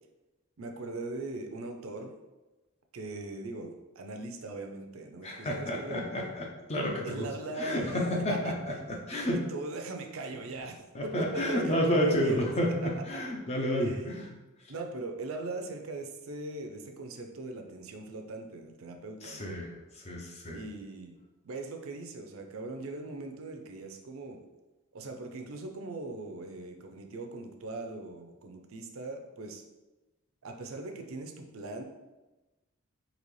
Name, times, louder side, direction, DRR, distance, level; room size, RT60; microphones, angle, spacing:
voice 1, 0.6-2.1 2.9-6.1 7.0-8.0 8.3-8.6 9.3-12.5 12.8-12.9 13.8-14.1 14.7-19.6 20.5-21.2 21.4-24.4 24.9-29.6 30.4-31.8, right 2 dB, 70° right, 4 dB, 0.5 m, -40 dB
voice 2, 5.2-7.3 7.6-8.5 9.1-9.4 10.9-13.9 19.2-19.7 20.0-20.6, equal, 30° left, 0 dB, 0.6 m, -30 dB
4.0 x 2.9 x 3.1 m, 1.1 s
head